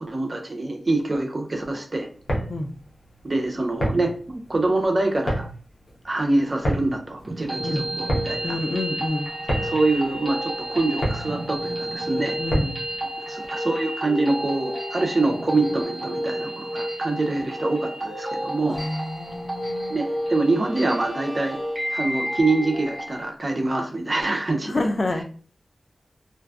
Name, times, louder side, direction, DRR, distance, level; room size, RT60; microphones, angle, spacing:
voice 1, 0.0-2.1 3.2-5.5 6.0-8.6 9.6-12.4 13.3-18.8 19.9-21.6 21.9-24.9, right 2 dB, 45° right, 0.5 m, -25 dB
sound 1, 2.1-13.0, equal, 70° left, 0.7 m, -30 dB
sound 2, 7.2-23.2, equal, 20° right, 1.0 m, -30 dB
voice 2, 8.4-9.3 12.4-12.7 18.7-20.0 24.7-25.2, left 2 dB, 50° left, 0.3 m, -28 dB
Bowed string instrument, 19.4-22.5, equal, 10° left, 1.3 m, -43 dB
2.5 x 2.2 x 2.3 m
wide cardioid pair, 60°, 0 cm